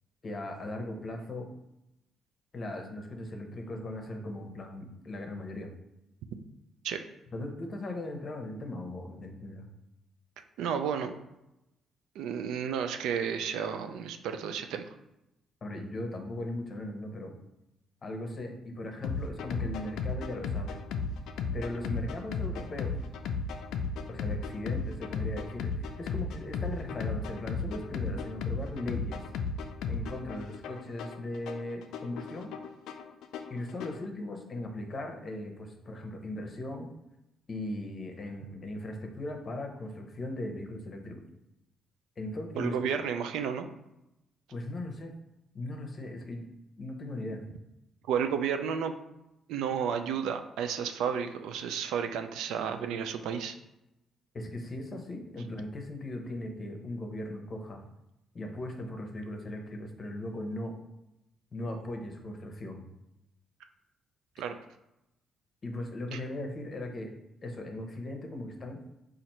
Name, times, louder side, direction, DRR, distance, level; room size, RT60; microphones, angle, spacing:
voice 1, 0.2-1.5 2.5-5.7 7.3-9.6 15.6-17.3 18.0-20.8 21.5-22.9 24.1-29.2 29.9-32.5 33.5-36.9 37.5-41.2 42.2-42.8 44.5-45.1 45.5-46.4 46.8-47.4 54.3-57.8 58.3-60.7 61.5-62.8 65.6-67.1 67.4-68.8, left 1 dB, 40° left, 4 dB, 0.8 m, -38 dB
voice 2, 10.6-11.1 12.2-14.8 42.6-43.7 48.1-48.9 49.5-53.6 64.4-64.5 66.1-66.2, right 7 dB, 90° right, 7 dB, 0.3 m, -32 dB
sound 1, 19.0-34.0, left 4 dB, 85° left, 0.4 m, -35 dB
4.1 x 2.5 x 4.3 m, 0.90 s
cardioid pair, 90°, 0 cm